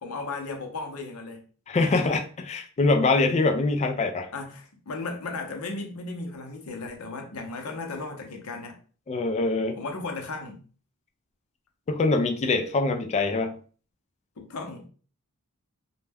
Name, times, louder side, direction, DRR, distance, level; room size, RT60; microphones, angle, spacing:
voice 1, 0.0-1.4 4.3-8.8 9.8-10.6 14.4-14.9, left 3 dB, 70° left, 0.6 m, -35 dB
voice 2, 1.7-4.3 9.1-9.8 11.9-13.6, left 3 dB, 30° left, 0.3 m, -24 dB
2.2 x 2.1 x 3.3 m
head